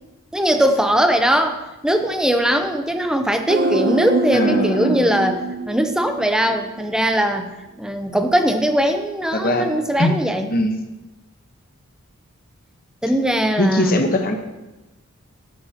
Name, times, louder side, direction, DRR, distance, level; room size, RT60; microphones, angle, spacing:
voice 1, 0.3-7.5 7.8-10.5 13.0-14.0, equal, 5° right, 6 dB, 0.6 m, -20 dB
sound 1, 3.5-6.8 7.0-7.1, right 2 dB, 45° right, 0.7 m, -24 dB
voice 2, 4.3-5.1 9.3-9.6 10.0-10.1 10.5-10.7 13.6-14.4, left 1 dB, 40° left, 5 dB, 1.0 m, -20 dB
12.5 x 9.6 x 2.9 m, 1.1 s
head